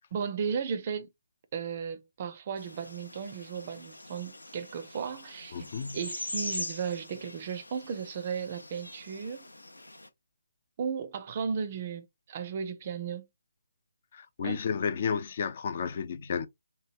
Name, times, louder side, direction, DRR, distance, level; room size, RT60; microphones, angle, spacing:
voice 1, 0.1-1.1 1.5-5.7 5.9-9.5 10.8-13.3 14.4-14.6, right 6 dB, 35° right, 0.4 m, -35 dB
sound 1, 2.6-10.1, left 2 dB, 80° left, 0.6 m, -42 dB
voice 2, 5.5-6.0 14.1-16.5, left 6 dB, 40° left, 0.4 m, -32 dB
3.1 x 2.2 x 2.8 m
figure-of-eight pair, 145°, 0 cm